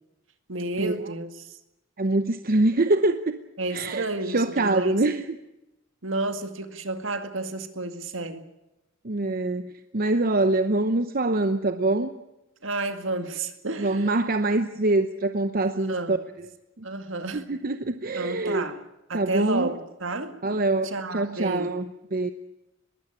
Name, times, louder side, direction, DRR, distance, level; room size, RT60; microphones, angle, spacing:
voice 1, 0.5-1.4 3.6-5.0 6.0-8.4 12.6-14.1 15.9-16.2 16.8-17.5 18.1-18.8 19.1-20.4 20.8-21.7, right 2 dB, 70° right, 2.1 m, -31 dB
voice 2, 2.0-3.4 3.7-5.4 9.0-12.1 13.8-16.2 16.8-16.9 17.3-18.6 19.1-19.8 20.4-21.9 22.1-22.3, right 2 dB, 50° right, 0.9 m, -24 dB
21.5 x 16.0 x 9.9 m
head